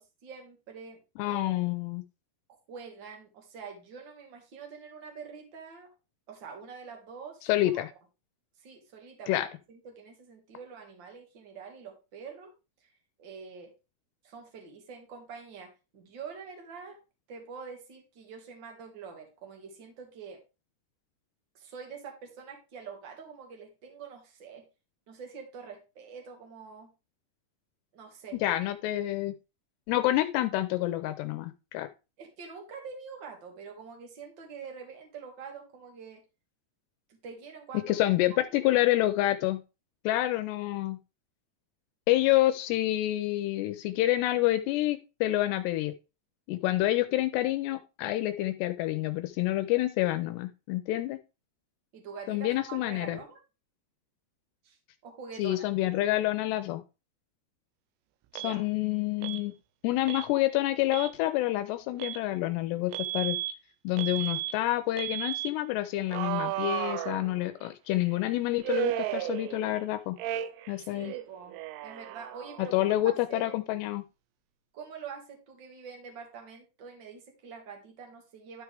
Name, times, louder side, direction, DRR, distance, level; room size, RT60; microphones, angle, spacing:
voice 1, 0.0-1.6 2.7-5.9 6.3-7.8 8.6-12.5 12.8-12.9 13.2-13.7 14.2-17.0 17.3-20.4 21.5-24.6 25.1-26.9 27.9-28.4 32.2-36.2 37.1-38.1 38.5-38.8 51.9-53.4 54.6-54.8 55.0-55.7 58.4-58.6 70.8-71.6 71.8-73.6 74.7-78.6, right 6 dB, 50° right, 2 dB, 1.5 m, -45 dB
voice 2, 1.2-2.0 7.4-7.9 9.3-9.5 28.4-29.4 29.9-31.9 37.9-39.6 40.0-41.0 42.1-45.9 46.5-51.2 52.3-53.2 55.4-56.8 58.3-59.5 59.8-63.4 63.8-70.2 70.7-71.1 72.6-74.0, left 16 dB, 80° left, 10 dB, 2.6 m, -28 dB
Alarm, 58.4-58.6 59.2-59.4 60.1-60.3 60.8-61.1 62.0-62.2 62.9-63.5 64.0-64.5 65.0-65.5 66.1-67.7 68.6-69.8 70.2-70.7 71.0-72.7, right 14 dB, 85° right, 2.8 m, -34 dB
12.0 x 4.7 x 3.4 m, 0.29 s
omnidirectional pair, 5.1 m